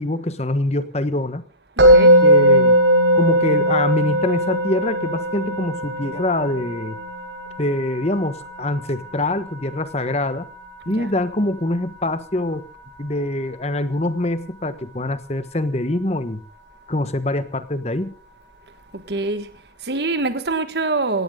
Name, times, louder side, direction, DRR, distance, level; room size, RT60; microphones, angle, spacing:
voice 1, 0.0-1.4 2.2-2.8 3.1-7.0 7.6-10.5 10.9-12.6 13.0-16.4 16.9-18.1, left 1 dB, 35° left, 1.2 m, -24 dB
voice 2, 1.8-2.3 10.9-11.1 18.9-21.2, right 3 dB, 65° right, 1.6 m, -25 dB
Musical instrument, 1.8-12.9, right 1 dB, 90° right, 7.9 m, -20 dB
17.5 x 17.0 x 3.8 m
head